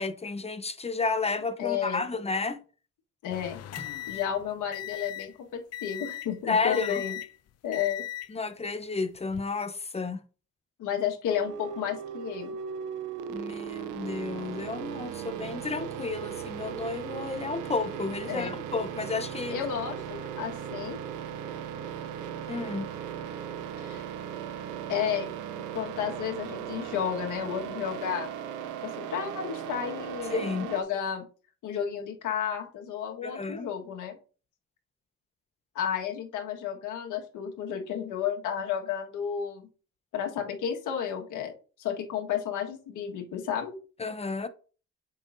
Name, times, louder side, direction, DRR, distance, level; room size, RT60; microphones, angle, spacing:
voice 1, 0.0-2.6 6.5-7.0 8.3-10.2 13.3-19.6 22.5-22.9 30.3-30.7 33.2-33.7 44.0-44.5, left 4 dB, 20° left, 0.7 m, -31 dB
voice 2, 1.6-2.0 3.2-3.6 4.1-7.2 7.6-8.0 10.8-12.5 18.3-18.6 19.5-21.0 23.8-24.0 24.9-28.3 28.8-31.2 31.6-34.2 35.7-39.7 40.1-41.5 41.8-43.8, left 8 dB, 80° left, 1.5 m, -32 dB
sound 1, 3.3-5.4 5.7-6.4 6.7-7.4 7.7-8.3 9.1-9.4, left 12 dB, 55° left, 0.5 m, -38 dB
sound 2, 11.3-30.8, right 8 dB, 90° right, 0.7 m, -37 dB
7.6 x 5.5 x 2.6 m
cardioid pair, 90°, 30 cm